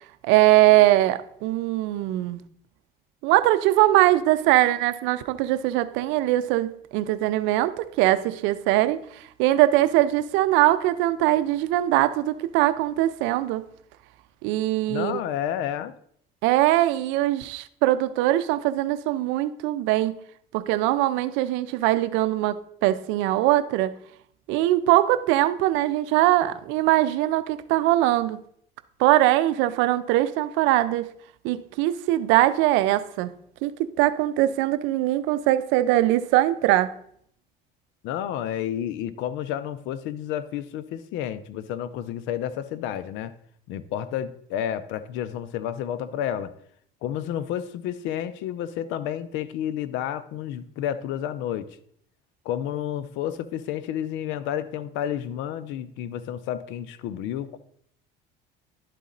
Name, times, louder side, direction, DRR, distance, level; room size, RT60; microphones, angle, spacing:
voice 1, 0.2-2.4 3.2-13.7 14.4-15.2 16.4-20.2 20.5-23.9 24.5-28.4 29.0-31.1 31.4-33.3 33.6-36.9, right 15 dB, 80° right, 0.6 m, -21 dB
voice 2, 14.9-15.9 38.0-43.3 43.7-46.5 47.0-51.7 52.4-57.6, left 10 dB, 75° left, 0.6 m, -30 dB
11.5 x 4.1 x 3.9 m
cardioid pair, 105°, 19 cm